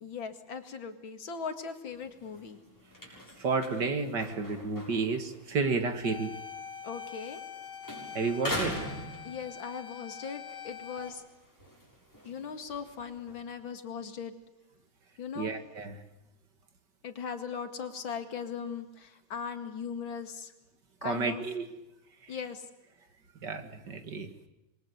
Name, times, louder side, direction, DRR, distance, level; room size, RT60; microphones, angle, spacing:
voice 1, 0.0-2.6 6.8-7.4 9.2-11.2 12.2-14.3 15.2-15.6 17.0-20.5 21.0-21.4 22.3-22.6, left 6 dB, 85° left, 7 dB, 2.8 m, -39 dB
sound 1, 1.9-7.6 7.8-9.9 10.3-13.4, equal, 10° left, 7.5 m, -42 dB
voice 2, 3.4-6.3 8.1-8.8 15.4-16.0 21.0-21.7 23.4-24.3, right 4 dB, 60° right, 8 dB, 2.6 m, -31 dB
sound 2, 6.0-11.1, left 8 dB, 65° left, 2.6 m, -44 dB
27.0 x 23.0 x 8.1 m, 0.95 s
omnidirectional pair, 2.1 m